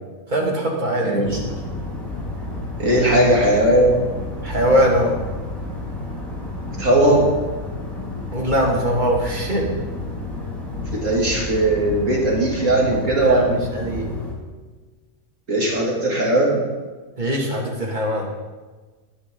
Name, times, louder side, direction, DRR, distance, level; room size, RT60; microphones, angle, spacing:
voice 1, 0.3-1.4 4.4-5.2 8.3-9.7 13.2-14.1 17.2-18.3, equal, 30° right, -2 dB, 3.0 m, -21 dB
voice 2, 1.0-1.4 2.8-4.0 6.8-7.3 10.9-13.5 15.5-16.6, right 1 dB, 55° right, -3 dB, 3.5 m, -18 dB
sound 1, 1.2-14.3, left 2 dB, ahead, 4.1 m, -31 dB
20.0 x 10.0 x 4.0 m, 1.3 s
omnidirectional pair, 1.5 m